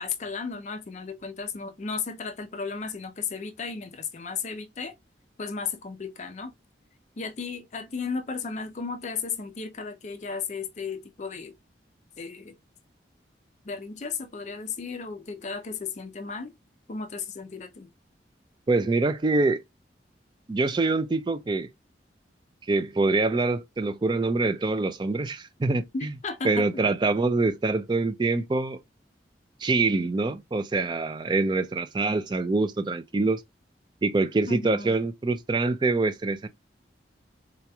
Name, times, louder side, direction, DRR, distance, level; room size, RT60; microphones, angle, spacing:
voice 1, 0.0-4.9 5.4-6.5 7.2-11.5 12.2-12.5 13.6-16.5 16.9-17.9 25.9-26.7 34.5-35.0, left 5 dB, 40° left, 0.4 m, -34 dB
voice 2, 18.7-19.6 20.5-21.7 22.7-26.1 26.4-28.8 29.6-33.4 34.0-36.5, right 3 dB, 25° right, 0.3 m, -25 dB
3.9 x 2.9 x 2.2 m
head